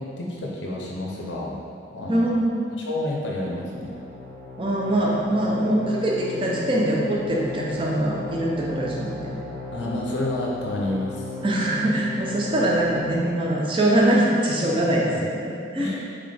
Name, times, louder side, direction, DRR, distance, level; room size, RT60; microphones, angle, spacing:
voice 1, 0.0-1.6 1.9-2.4 2.8-3.9 9.7-11.2 15.1-15.2 15.8-16.0, left 1 dB, 70° left, -3 dB, 0.6 m, -29 dB
voice 2, 2.1-2.6 4.6-9.3 11.4-15.9, right 1 dB, 25° right, -4 dB, 0.5 m, -23 dB
sound 1, 3.7-13.2, left 3 dB, 55° right, 1.3 m, -36 dB
4.1 x 3.3 x 3.3 m, 2.4 s
head